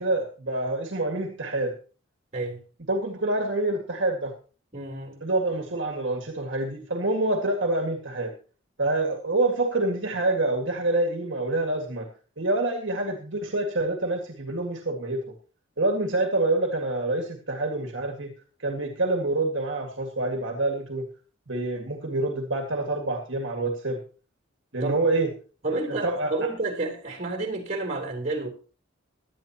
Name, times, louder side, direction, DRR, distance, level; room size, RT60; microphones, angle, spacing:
voice 1, 0.0-1.8 2.9-4.4 5.2-8.3 8.8-12.1 12.4-15.3 15.8-18.3 18.6-21.1 21.5-24.0 24.7-25.3 25.9-26.5, right 2 dB, 70° right, 1.9 m, -27 dB
voice 2, 4.7-5.2 24.8-25.0 25.6-28.5, right 2 dB, 35° right, 3.8 m, -30 dB
17.5 x 11.5 x 3.0 m
head